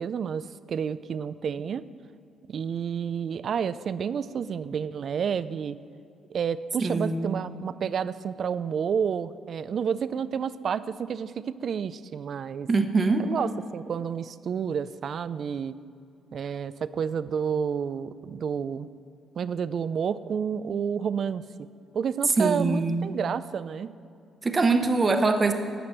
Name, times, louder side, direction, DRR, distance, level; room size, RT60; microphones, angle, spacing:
voice 1, 0.0-1.8 2.5-5.8 6.3-12.7 13.3-15.7 16.3-18.9 19.4-21.7 21.9-23.9, right 7 dB, 55° right, 15 dB, 0.4 m, -30 dB
voice 2, 6.8-7.4 12.7-13.3 22.4-23.2 24.4-25.5, right 3 dB, 30° right, 7 dB, 0.9 m, -23 dB
9.5 x 6.0 x 7.3 m, 2.5 s
cardioid pair, 90°, 0 cm